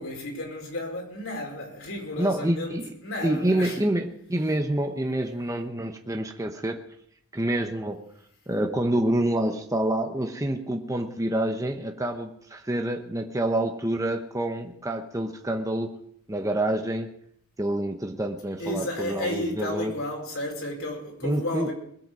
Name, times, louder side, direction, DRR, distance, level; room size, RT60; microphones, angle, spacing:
voice 1, 0.0-3.9 18.6-21.7, left 1 dB, 65° left, 4.8 m, -33 dB
voice 2, 2.2-2.9 3.2-6.8 7.3-8.0 8.5-16.0 16.3-17.1 17.6-19.9 21.2-21.7, right 1 dB, 15° right, 0.9 m, -27 dB
21.5 x 8.1 x 6.3 m
head